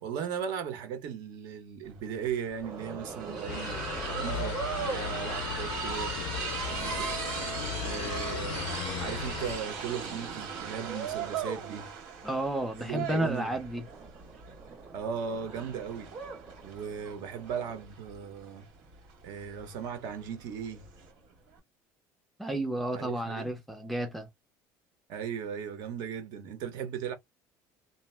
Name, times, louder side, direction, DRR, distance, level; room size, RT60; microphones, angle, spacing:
voice 1, 0.0-3.8 4.2-6.2 6.6-7.1 7.8-8.7 9.0-11.9 12.8-13.5 14.9-16.1 16.6-18.7 19.2-20.9 22.9-23.5 25.1-27.1, right 7 dB, 60° right, 0.9 m, -37 dB
sound 1, 1.9-2.0 2.2-21.1, right 6 dB, 90° right, 1.6 m, -38 dB
sound 2, 2.6-17.9, right 5 dB, 25° right, 0.8 m, -49 dB
sound 3, 3.5-9.6, left 9 dB, 90° left, 0.4 m, -37 dB
voice 2, 12.2-13.8 22.4-24.3, right 1 dB, ahead, 0.4 m, -32 dB
2.7 x 2.1 x 3.2 m
cardioid pair, 170°, 8 cm